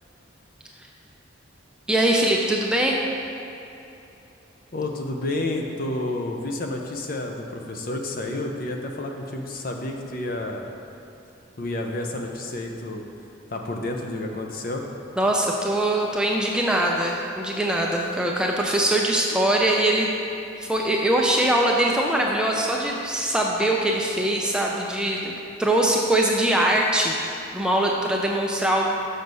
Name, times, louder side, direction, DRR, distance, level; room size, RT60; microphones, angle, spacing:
voice 1, 1.9-3.0 15.2-20.1 20.6-25.3 25.6-28.9, right 1 dB, 5° right, -1 dB, 0.4 m, -22 dB
voice 2, 4.7-10.6 11.6-13.0 13.5-14.8, left 2 dB, 45° left, 2 dB, 0.6 m, -30 dB
6.5 x 6.2 x 5.3 m, 2.9 s
head